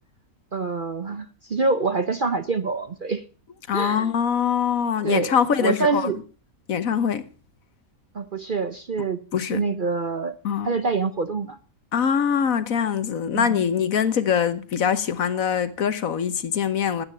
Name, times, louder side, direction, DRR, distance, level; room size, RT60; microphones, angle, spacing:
voice 1, 0.5-3.2 3.7-4.1 5.0-6.2 8.1-9.2 9.5-10.4 10.6-11.6 13.3-13.6, right 4 dB, 45° right, 0.8 m, -26 dB
voice 2, 3.7-6.1 6.7-7.3 9.3-9.6 10.4-10.7 11.9-17.0, left 7 dB, 65° left, 1.4 m, -23 dB
15.0 x 9.1 x 6.8 m
omnidirectional pair, 1.6 m